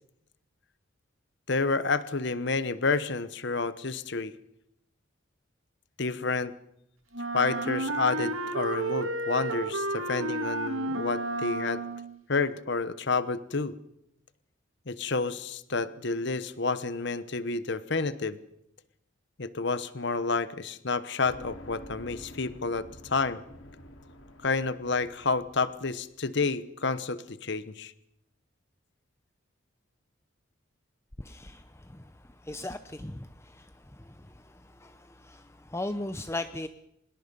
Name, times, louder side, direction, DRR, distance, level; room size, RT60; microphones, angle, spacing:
voice 1, 1.5-4.3 6.0-6.5 7.3-11.8 12.3-13.7 14.9-18.4 19.4-23.4 24.4-27.9, left 4 dB, 55° left, 15 dB, 1.1 m, -29 dB
Wind instrument woodwind instrument, 7.1-12.2, right 2 dB, 85° right, 2.1 m, -32 dB
sound 1, 21.2-26.2, left 1 dB, 80° left, 2.8 m, -49 dB
voice 2, 31.2-31.6 32.5-33.3 33.6-33.7 34.8-34.9 35.2-35.4 35.7-36.7, left 2 dB, 15° left, 10 dB, 0.7 m, -35 dB
25.0 x 21.0 x 5.4 m, 0.79 s
head